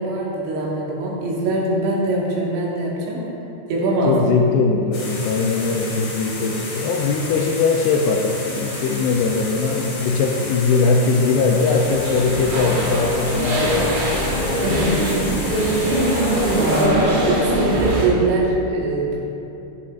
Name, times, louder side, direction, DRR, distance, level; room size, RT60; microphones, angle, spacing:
voice 1, 0.0-3.2 3.7-4.2 14.6-15.0 16.6-19.2, right 2 dB, 90° right, -5 dB, 4.0 m, -22 dB
voice 2, 4.1-14.3 14.8-15.2, left 4 dB, 80° left, 2 dB, 2.5 m, -20 dB
sound 1, 4.9-16.9, left 2 dB, 55° left, 3.3 m, -32 dB
sound 2, 11.5-18.1, equal, 65° right, 3.4 m, -21 dB
14.0 x 8.0 x 2.5 m, 2.9 s
omnidirectional pair, 5.1 m